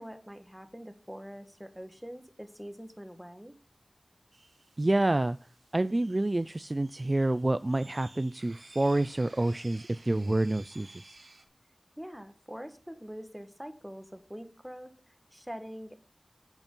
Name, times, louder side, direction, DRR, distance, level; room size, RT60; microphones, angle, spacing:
voice 1, 0.0-3.5 12.0-16.0, equal, 5° right, 7 dB, 1.4 m, -44 dB
sound 1, 4.3-11.4, right 2 dB, 70° right, 1.6 m, -55 dB
voice 2, 4.8-5.4 5.7-10.9, right 2 dB, 35° right, 13 dB, 0.3 m, -28 dB
8.1 x 7.1 x 5.3 m, 0.41 s
wide cardioid pair, 55°, 0 cm